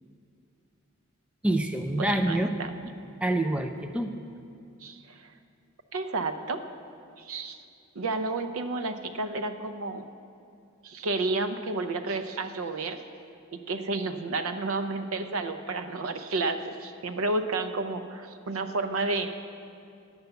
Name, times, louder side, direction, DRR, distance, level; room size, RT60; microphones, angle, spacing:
voice 1, 1.4-2.5 3.2-4.1, right 1 dB, 5° right, 5 dB, 0.4 m, -26 dB
voice 2, 2.0-2.7 4.8-5.3 5.9-6.6 7.2-7.6 8.0-10.0 10.8-13.0 13.5-19.3, right 3 dB, 80° right, 9 dB, 0.6 m, -31 dB
9.6 x 8.0 x 6.8 m, 2.5 s
head